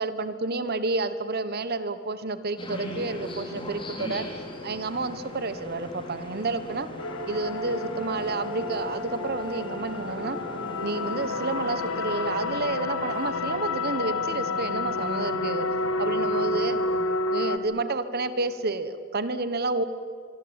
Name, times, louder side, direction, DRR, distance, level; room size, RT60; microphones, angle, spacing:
voice 1, 0.0-4.3 4.6-6.9 7.3-10.4 10.8-15.7 16.0-16.8 17.3-19.8, right 3 dB, 45° right, 13 dB, 1.2 m, -30 dB
sound 1, 2.6-17.0, left 1 dB, 25° left, 4.0 m, -40 dB
sound 2, 7.0-17.6, left 2 dB, 70° left, 1.8 m, -30 dB
24.0 x 24.0 x 8.9 m, 2.2 s
head